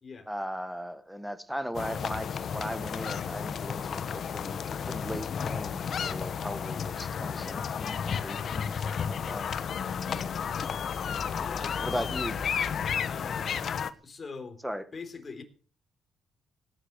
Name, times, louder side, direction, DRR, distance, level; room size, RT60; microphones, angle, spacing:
voice 1, 0.3-9.5 11.8-12.4 14.6-14.8, equal, 5° right, 1.8 m, -38 dB
sound 1, 1.7-13.9, left 7 dB, 55° left, 1.2 m, -32 dB
voice 2, 11.4-12.1 13.0-13.5 14.0-14.6 14.9-15.4, left 4 dB, 35° left, 3.8 m, -43 dB
17.5 x 10.0 x 6.6 m
cardioid pair, 90°, 0 cm